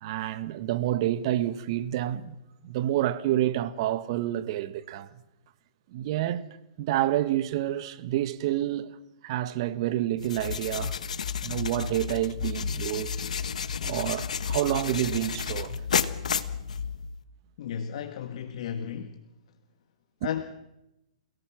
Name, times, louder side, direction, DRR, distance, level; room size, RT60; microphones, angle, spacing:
voice 1, 0.0-2.3 2.6-5.1 5.9-6.4 6.8-9.0 9.2-11.0 11.4-13.2 13.8-15.8, right 13 dB, 45° right, 1.4 m, -28 dB
sound 1, 10.2-17.2, left 7 dB, 85° left, 1.3 m, -31 dB
voice 2, 17.6-19.2 20.2-20.4, left 8 dB, 55° left, 1.5 m, -34 dB
30.0 x 18.0 x 6.0 m
hypercardioid pair, 145°, 4 cm